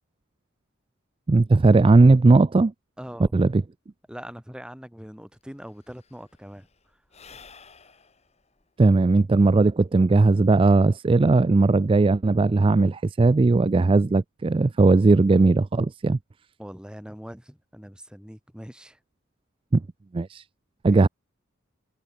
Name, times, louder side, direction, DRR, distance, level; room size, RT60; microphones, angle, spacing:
voice 1, 1.3-2.7 3.3-3.6 8.8-16.2 19.7-19.8 20.1-20.4 20.8-21.1, right 3 dB, 25° right, 0.3 m, -18 dB
voice 2, 3.0-3.3 4.1-6.7 16.6-19.0 20.9-21.1, equal, 5° right, 2.7 m, -42 dB
Sigh / Breathing, 5.1-5.2 5.3-10.1, left 5 dB, 30° left, 2.3 m, -53 dB
head